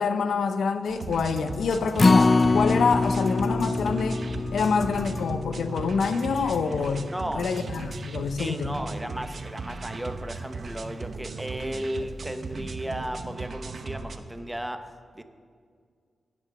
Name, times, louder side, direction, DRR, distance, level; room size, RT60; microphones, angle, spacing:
voice 1, 0.0-4.2 4.5-7.1 7.3-8.7, left 5 dB, 85° left, 10 dB, 0.6 m, -26 dB
sound 1, 0.8-5.7 6.0-6.6 7.4-8.0, left 3 dB, 60° left, 1.2 m, -46 dB
sound 2, 0.9-14.2, right 4 dB, 55° right, 0.7 m, -37 dB
Acoustic guitar, 2.0-8.3 8.7-8.8 9.2-9.3, left 3 dB, 40° left, 0.3 m, -25 dB
voice 2, 7.1-7.5 8.2-15.2, right 1 dB, 10° right, 9 dB, 0.8 m, -35 dB
16.0 x 6.1 x 6.8 m, 2.1 s
cardioid pair, 75°, 0 cm